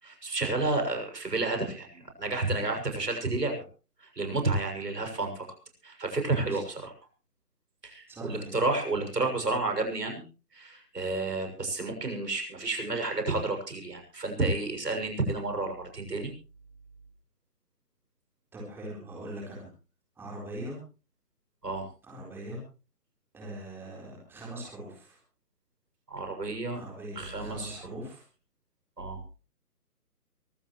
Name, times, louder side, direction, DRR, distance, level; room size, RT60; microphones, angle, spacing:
voice 1, 0.0-3.6 4.0-5.4 5.8-6.9 7.8-10.2 10.5-16.3 21.6-21.9 26.1-26.8 27.2-28.0 29.0-29.2, right 2 dB, 85° right, 5 dB, 6.9 m, -31 dB
voice 2, 8.1-8.5 18.5-19.7 20.2-20.8 22.0-22.6 23.3-25.2 26.7-28.2, right 1 dB, 5° right, -2 dB, 3.9 m, -41 dB
23.5 x 15.0 x 3.2 m, 0.33 s
figure-of-eight pair, 160°, 47 cm